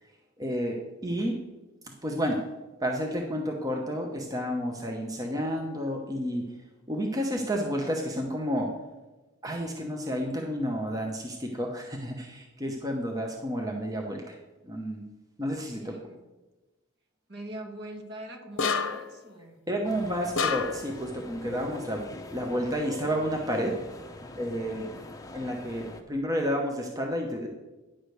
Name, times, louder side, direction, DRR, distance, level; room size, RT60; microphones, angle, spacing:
voice 1, 0.4-1.4 1.8-2.4 2.8-6.5 6.9-8.7 9.4-14.4 14.6-15.0 15.4-16.0 19.7-23.8 24.4-24.9 25.3-27.5, equal, 15° right, 1 dB, 0.8 m, -31 dB
voice 2, 15.7-16.2 17.3-19.6, right 1 dB, 50° right, 3 dB, 1.4 m, -42 dB
sound 1, 18.6-19.2 20.4-20.9, left 5 dB, 60° left, 0.8 m, -28 dB
sound 2, 19.8-26.0, left 1 dB, 15° left, 0.7 m, -44 dB
10.0 x 5.0 x 6.4 m, 1.1 s
head